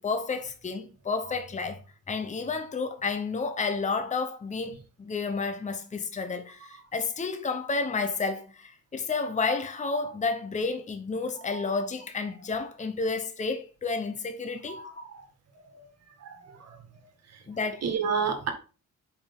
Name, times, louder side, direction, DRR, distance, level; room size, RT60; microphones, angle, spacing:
voice 1, 0.0-1.8 2.1-15.0 17.5-17.8, left 4 dB, 25° left, 0.9 m, -31 dB
voice 2, 14.7-15.2 15.7-15.9 16.2-16.8 17.8-18.5, right 6 dB, 55° right, 1.8 m, -31 dB
5.1 x 5.1 x 5.2 m
cardioid pair, 90°, 30 cm